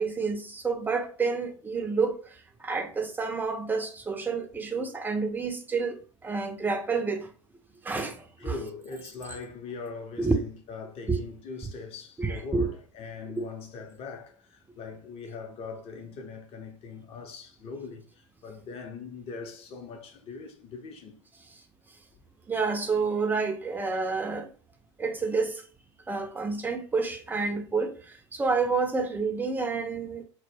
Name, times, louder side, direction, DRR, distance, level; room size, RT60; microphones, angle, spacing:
voice 1, 0.0-2.2 2.6-7.3 7.8-8.5 10.2-10.3 11.1-11.2 12.2-12.7 13.4-13.5 22.5-24.5 25.0-25.6 26.1-28.0 28.3-30.2, right 4 dB, 10° right, 0.4 m, -29 dB
voice 2, 8.4-21.1 22.1-22.2, left 4 dB, 35° left, 0.6 m, -41 dB
2.1 x 2.1 x 3.1 m
hypercardioid pair, 90°, 16 cm